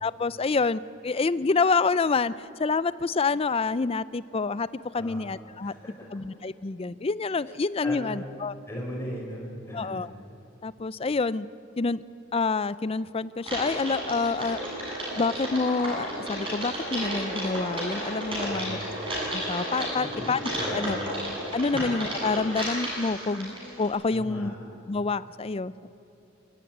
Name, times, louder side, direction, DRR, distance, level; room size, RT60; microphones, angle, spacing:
voice 1, 0.0-4.7 4.9-5.7 6.1-8.5 9.7-10.1 10.6-11.5 11.8-12.0 12.3-14.6 15.2-18.8 19.3-20.4 20.7-21.0 21.5-24.5 24.9-25.9, left 4 dB, 25° left, 17 dB, 0.4 m, -27 dB
voice 2, 5.6-6.1 7.8-8.1 8.7-10.1 18.4-18.8 19.9-21.1 21.7-21.8 24.1-24.5, equal, 10° left, -2 dB, 5.5 m, -38 dB
Typing, 13.4-23.9, right 1 dB, 25° right, 7.9 m, -33 dB
26.0 x 14.5 x 9.3 m, 2.9 s
head